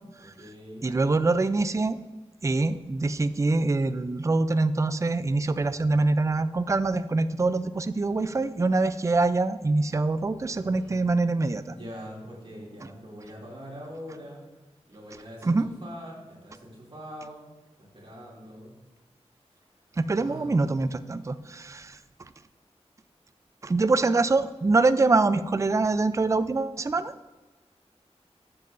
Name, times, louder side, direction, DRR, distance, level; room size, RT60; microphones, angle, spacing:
voice 1, 0.1-0.9 10.5-11.0 11.7-14.4 14.9-17.5 17.8-18.8 19.5-19.7 20.2-20.6 21.4-21.7, equal, 50° right, -4 dB, 2.6 m, -43 dB
voice 2, 0.8-2.0 2.4-11.6 15.4-15.7 20.0-22.0 23.6-27.1, right 3 dB, 25° right, 12 dB, 0.4 m, -24 dB
13.5 x 7.5 x 2.6 m, 1.1 s
wide cardioid pair, 85°, 12 cm